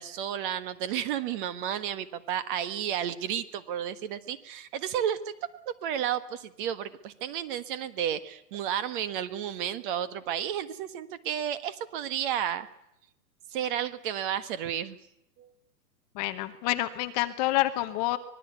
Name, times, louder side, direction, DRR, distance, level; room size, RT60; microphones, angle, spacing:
voice 1, 0.0-12.7 13.5-15.0 15.4-15.5, right 10 dB, 30° right, 13 dB, 1.5 m, -32 dB
voice 2, 16.1-18.2, left 16 dB, 25° left, 9 dB, 1.0 m, -28 dB
24.5 x 20.5 x 8.2 m, 0.79 s
hypercardioid pair, 150°, 49 cm